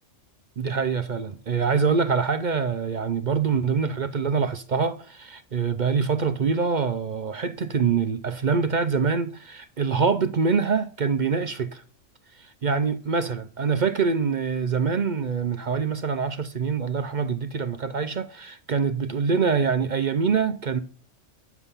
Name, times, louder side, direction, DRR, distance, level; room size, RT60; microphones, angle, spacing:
voice 1, 0.6-11.8 12.4-20.8, right 5 dB, 45° right, 0.6 m, -25 dB
10.0 x 7.1 x 5.5 m
omnidirectional pair, 1.3 m